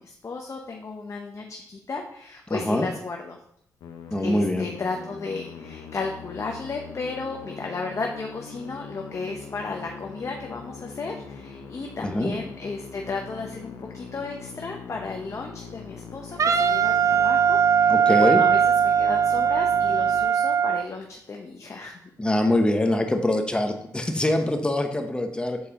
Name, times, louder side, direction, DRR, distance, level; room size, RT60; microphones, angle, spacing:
voice 1, 0.0-3.4 4.2-21.9, left 4 dB, 45° left, 2 dB, 0.7 m, -34 dB
voice 2, 2.5-2.9 4.1-4.7 12.0-12.3 17.9-18.4 22.2-25.6, left 1 dB, 15° left, 5 dB, 0.9 m, -24 dB
Musical instrument, 3.8-20.9, left 5 dB, 85° left, 0.7 m, -42 dB
Wind instrument woodwind instrument, 16.4-20.8, right 7 dB, 50° right, 0.4 m, -20 dB
7.1 x 4.2 x 3.7 m, 0.71 s
cardioid pair, 70°, 7 cm